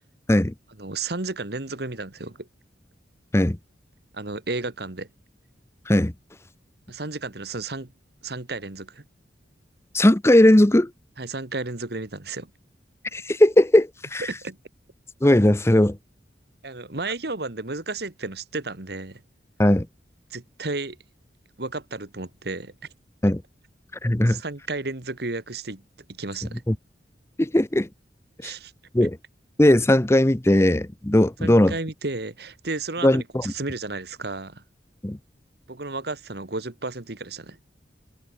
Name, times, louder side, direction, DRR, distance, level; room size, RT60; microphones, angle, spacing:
voice 1, 0.8-2.5 4.1-5.1 6.9-7.9 8.2-9.0 11.2-12.5 14.3-14.6 16.6-19.2 20.3-21.0 21.6-22.7 24.3-25.8 26.1-26.6 28.4-28.7 31.4-34.6 35.7-37.6, right 3 dB, 60° right, 1.8 m, -33 dB
voice 2, 9.9-10.9 13.1-14.2 15.2-16.0 19.6-19.9 23.2-23.4 24.0-24.4 26.7-26.8 27.4-27.9 28.4-28.5 28.9-29.2 29.6-31.7 33.0-33.5 35.0-35.2, left 1 dB, 15° left, 0.7 m, -18 dB
head